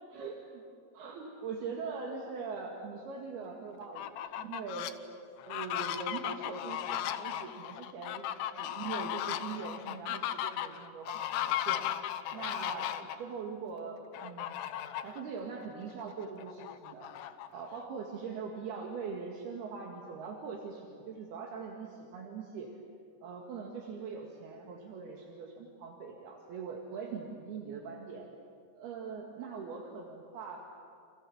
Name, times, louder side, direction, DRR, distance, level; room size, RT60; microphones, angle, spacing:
voice 1, 0.1-0.6 0.9-5.0 5.5-11.9 12.3-14.7 15.0-17.2 17.5-22.8 23.2-28.3 28.8-30.7, right 5 dB, 70° right, 1 dB, 3.8 m, -42 dB
Fowl, 3.8-4.9 5.4-13.2 14.1-15.2 15.6-15.7 16.1-17.8, left 12 dB, 85° left, 3.1 m, -36 dB
29.5 x 28.0 x 7.2 m, 2.3 s
omnidirectional pair, 4.7 m